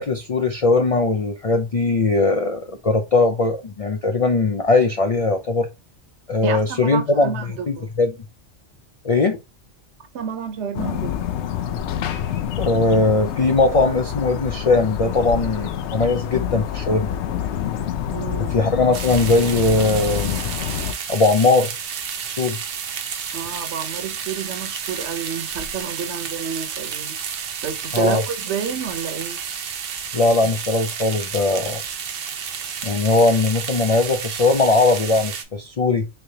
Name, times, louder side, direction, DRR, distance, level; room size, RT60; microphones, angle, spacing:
voice 1, 0.0-5.7 6.3-8.2 9.0-9.4 12.6-17.1 18.4-20.5 21.1-21.7 22.2-22.6 27.9-28.2 30.1-31.8 32.8-36.1, left 3 dB, 60° left, 0.3 m, -19 dB
voice 2, 6.4-7.9 10.1-11.1 18.1-18.5 23.3-27.2 27.6-29.4, right 7 dB, 80° right, 1.1 m, -29 dB
sound 1, 10.7-20.9, left 9 dB, 80° left, 0.8 m, -27 dB
sound 2, 18.9-35.4, right 7 dB, 60° right, 0.8 m, -31 dB
3.9 x 3.3 x 2.7 m
omnidirectional pair, 1.2 m